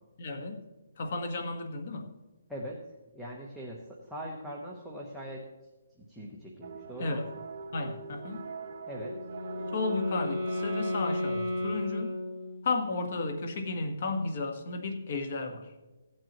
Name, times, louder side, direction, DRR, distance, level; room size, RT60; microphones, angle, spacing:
voice 1, 0.2-0.6 1.0-2.1 7.0-7.3 7.7-8.4 9.7-12.1 12.6-15.7, left 3 dB, 45° left, 5 dB, 1.4 m, -33 dB
voice 2, 2.5-2.8 3.1-5.4 6.0-7.4 8.9-9.2, equal, ahead, -3 dB, 0.9 m, -41 dB
sound 1, 6.6-11.6, right 5 dB, 40° right, 0.9 m, -43 dB
Wind instrument woodwind instrument, 8.9-12.8, left 1 dB, 20° left, 4.3 m, -33 dB
16.0 x 9.0 x 3.0 m, 1.2 s
hypercardioid pair, 170°, 0 cm